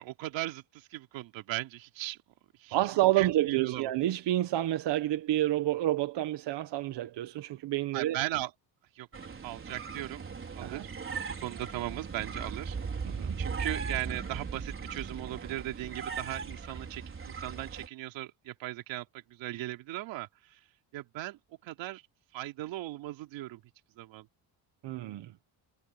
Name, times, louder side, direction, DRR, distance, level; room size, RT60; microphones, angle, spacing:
voice 1, 0.0-2.2 2.6-2.8 3.2-3.9 7.9-8.5 9.0-9.1 9.4-10.3 10.6-10.9 11.4-12.8 13.4-20.6 20.9-22.0 22.3-23.6 24.0-24.3, right 16 dB, 85° right, 3.3 m, -38 dB
voice 2, 2.7-8.2 10.6-10.9 13.0-13.4 24.8-25.3, right 14 dB, 65° right, 1.5 m, -29 dB
sound 1, 9.1-17.9, right 5 dB, 30° right, 5.0 m, -38 dB
cardioid pair, 135°, 44 cm